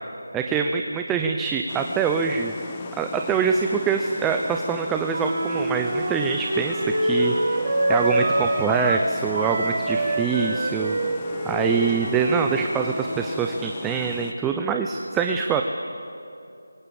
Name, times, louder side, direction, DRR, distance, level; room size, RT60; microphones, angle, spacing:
voice 1, 0.3-2.5 3.0-7.3 7.9-11.0 11.4-15.6, right 6 dB, 10° right, 4 dB, 0.7 m, -24 dB
sound 1, 1.7-14.3, left 6 dB, 20° left, 1.0 m, -39 dB
Wind instrument woodwind instrument, 5.1-9.1 9.3-13.3, right 1 dB, 50° right, 4.9 m, -25 dB
27.0 x 23.5 x 8.6 m, 2.6 s
figure-of-eight pair, 165°, 0 cm